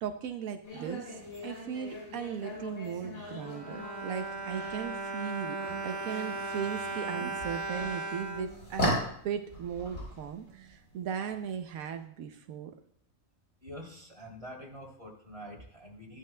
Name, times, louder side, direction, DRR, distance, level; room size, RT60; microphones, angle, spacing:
voice 1, 0.0-12.7, right 8 dB, 85° right, 7 dB, 1.1 m, -37 dB
sound 1, 0.6-11.9, equal, 80° left, 4.8 m, -39 dB
Bowed string instrument, 3.2-9.4 10.1-10.2 10.5-10.6, right 3 dB, 40° right, 0.8 m, -37 dB
voice 2, 13.6-16.2, equal, 25° right, -2 dB, 2.8 m, -46 dB
14.5 x 11.5 x 2.2 m, 0.65 s
omnidirectional pair, 1.4 m